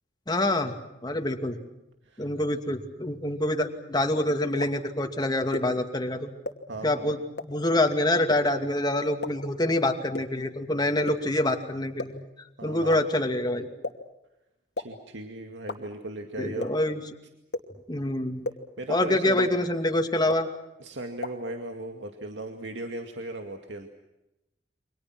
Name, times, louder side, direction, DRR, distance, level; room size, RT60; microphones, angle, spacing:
voice 1, 0.3-1.6 2.2-6.3 6.8-12.2 12.6-13.7 16.4-17.0 17.9-18.4 18.9-20.5, left 1 dB, 25° left, 5 dB, 2.5 m, -26 dB
sound 1, 4.6-4.7 5.5-5.6 6.4-6.5 7.4-7.5 8.3-8.4 9.2-9.3 10.1-10.2 11.1-11.2 12.0-12.1 12.9-13.0 13.8-13.9 14.8-14.9 15.7-15.8 16.6-16.7 17.5-17.6 18.4-18.5 19.4-19.5 20.3-20.4 21.2-21.3, left 2 dB, 65° left, 2.7 m, -31 dB
voice 2, 6.7-7.3 12.6-13.0 14.8-16.8 18.8-19.5 20.8-23.9, right 1 dB, 85° right, 5 dB, 2.3 m, -37 dB
29.5 x 25.5 x 6.2 m, 0.92 s
head